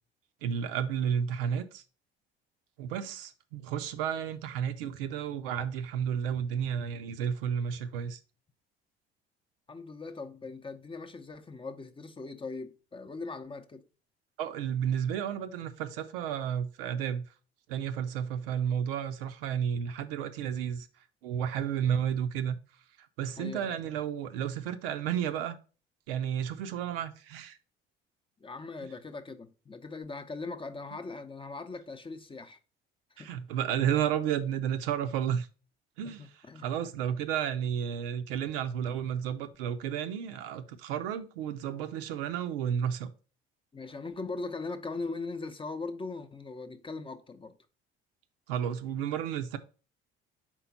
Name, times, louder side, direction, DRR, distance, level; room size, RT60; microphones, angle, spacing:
voice 1, 0.4-1.8 2.8-8.2 14.4-17.3 17.7-20.9 21.2-22.6 23.2-25.6 26.1-27.6 33.2-35.5 36.0-36.2 36.6-43.1 48.5-49.6, right 8 dB, 70° right, 0.6 m, -32 dB
voice 2, 9.7-13.8 23.4-23.8 28.4-32.6 33.2-33.3 36.0-36.7 37.1-37.2 43.7-47.5, left 3 dB, 20° left, 0.7 m, -40 dB
4.5 x 3.7 x 5.6 m
figure-of-eight pair, 55°, 29 cm